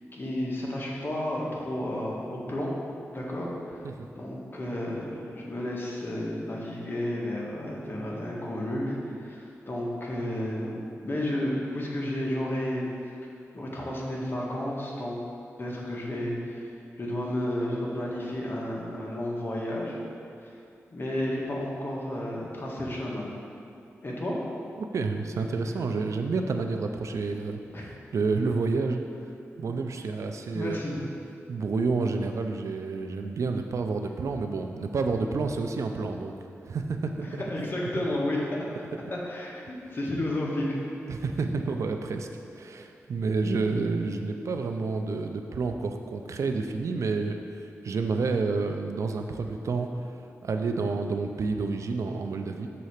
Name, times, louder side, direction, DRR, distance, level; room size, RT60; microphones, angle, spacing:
voice 1, 0.1-2.7 3.1-3.8 4.2-10.8 11.0-12.8 13.5-15.2 15.6-16.7 17.0-20.0 20.4-20.5 20.9-23.3 24.0-24.4 27.7-27.9 30.5-30.9 37.2-38.4 39.1-40.8, left 1 dB, 45° left, -4 dB, 1.6 m, -32 dB
voice 2, 24.8-29.0 29.6-30.8 31.5-36.3 36.7-37.6 38.0-38.1 41.1-42.3 42.5-49.9 50.4-52.7, right 4 dB, 75° right, 5 dB, 0.5 m, -29 dB
6.8 x 4.1 x 6.5 m, 2.5 s
cardioid pair, 70°, 5 cm